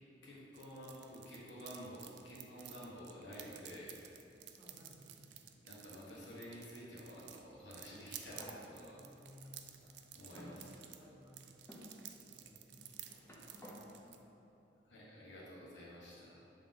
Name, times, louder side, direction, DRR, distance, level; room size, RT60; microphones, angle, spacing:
voice 1, 0.2-4.0 5.6-9.0 10.1-10.7 14.8-16.4, equal, 75° left, -7 dB, 1.4 m, -51 dB
sound 1, 0.5-14.2, right 11 dB, 65° right, 0.3 m, -55 dB
voice 2, 4.6-5.4 8.3-8.4 8.9-11.7 12.2-14.5, equal, 15° right, -6 dB, 1.2 m, -61 dB
sound 2, 7.8-8.6 9.4-9.5 10.4-11.2 11.7-11.9 12.8-13.8, left 1 dB, 15° left, 0.7 m, -55 dB
7.3 x 3.6 x 3.7 m, 2.8 s
head